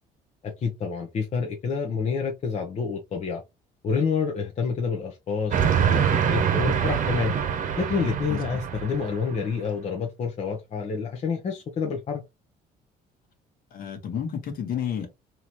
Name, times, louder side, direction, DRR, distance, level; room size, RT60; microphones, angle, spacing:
voice 1, 0.4-3.4 3.8-7.3 7.8-12.2, left 5 dB, 40° left, 0.8 m, -28 dB
Train, 5.5-9.4, right 8 dB, 50° right, 0.9 m, -24 dB
voice 2, 8.3-8.6 13.7-15.1, left 8 dB, 60° left, 1.4 m, -31 dB
3.9 x 3.0 x 3.0 m
cardioid pair, 110°, 17 cm